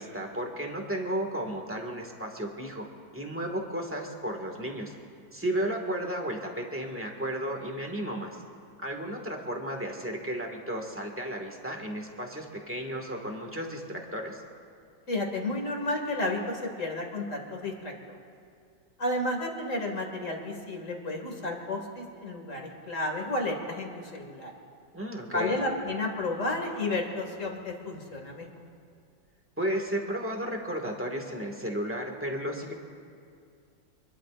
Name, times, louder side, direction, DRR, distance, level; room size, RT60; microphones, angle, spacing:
voice 1, 0.0-2.9 3.1-4.9 5.3-8.3 8.8-14.4 24.9-25.6 29.6-32.7, right 1 dB, 5° right, 1 dB, 1.7 m, -33 dB
voice 2, 15.1-18.2 19.0-24.5 25.3-28.5, left 2 dB, 40° left, 1 dB, 2.4 m, -32 dB
27.0 x 21.0 x 2.5 m, 2.4 s
omnidirectional pair, 2.1 m